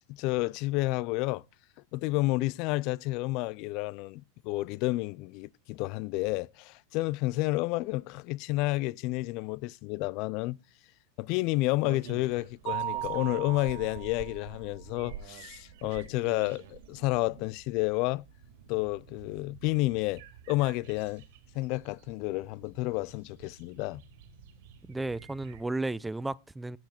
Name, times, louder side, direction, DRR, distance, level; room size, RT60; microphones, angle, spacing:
voice 1, 0.1-1.4 1.9-10.6 11.2-18.3 18.7-21.2 21.5-24.0, left 20 dB, 55° left, 0.5 m, -30 dB
sound 1, 11.7-25.6, right 8 dB, 70° right, 2.4 m, -49 dB
Mallet percussion, 12.7-14.4, right 13 dB, 45° right, 1.0 m, -36 dB
voice 2, 24.9-26.8, right 2 dB, 10° right, 0.5 m, -33 dB
16.5 x 5.9 x 4.4 m
hypercardioid pair, 115°, 0 cm